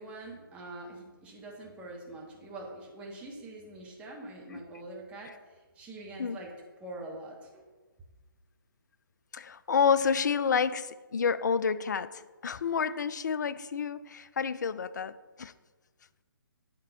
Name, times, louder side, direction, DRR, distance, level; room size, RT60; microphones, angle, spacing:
voice 1, 0.0-6.5 6.8-7.6, right 2 dB, 10° right, -2 dB, 1.3 m, -44 dB
voice 2, 9.3-15.5, left 6 dB, 55° left, 15 dB, 0.4 m, -29 dB
9.5 x 3.6 x 5.5 m, 1.3 s
figure-of-eight pair, 140°, 12 cm